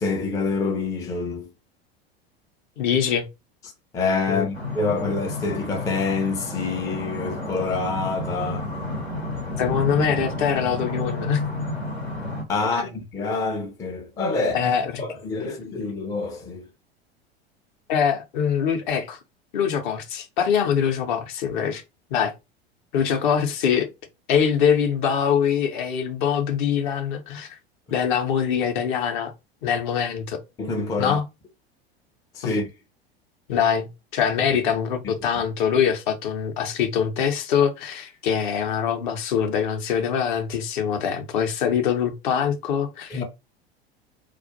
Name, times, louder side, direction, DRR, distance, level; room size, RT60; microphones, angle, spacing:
voice 1, 0.0-1.5 3.9-8.7 12.5-14.7 15.0-16.7 30.6-31.2 32.3-32.7 43.1-43.2, left 4 dB, 10° left, 0.4 m, -26 dB
voice 2, 2.8-3.2 4.3-4.5 9.6-11.4 12.7-12.9 14.5-15.0 17.9-19.2 19.5-21.8 22.1-22.3 22.9-23.9 24.3-27.6 27.9-29.3 29.6-30.4 31.0-31.2 32.4-32.5 33.5-43.2, left 7 dB, 50° left, 0.6 m, -23 dB
sound 1, 4.5-12.4, left 2 dB, 90° left, 0.8 m, -31 dB
2.3 x 2.1 x 2.6 m
figure-of-eight pair, 80°, 31 cm